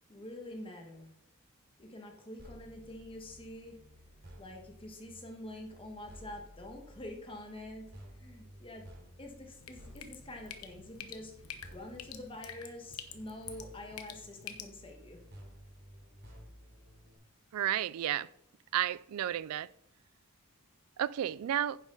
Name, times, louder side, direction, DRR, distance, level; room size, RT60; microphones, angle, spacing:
voice 1, 0.1-1.1 1.8-3.8 4.4-8.9 9.2-11.3 11.7-15.2, left 1 dB, 25° left, 1.5 m, -46 dB
sound 1, 2.4-17.1, equal, 50° right, 3.4 m, -55 dB
Drip, 9.5-14.7, left 8 dB, 85° left, 1.0 m, -48 dB
voice 2, 17.5-18.3 18.7-19.7 21.0-21.8, right 11 dB, 85° right, 0.3 m, -32 dB
10.0 x 7.3 x 4.1 m
head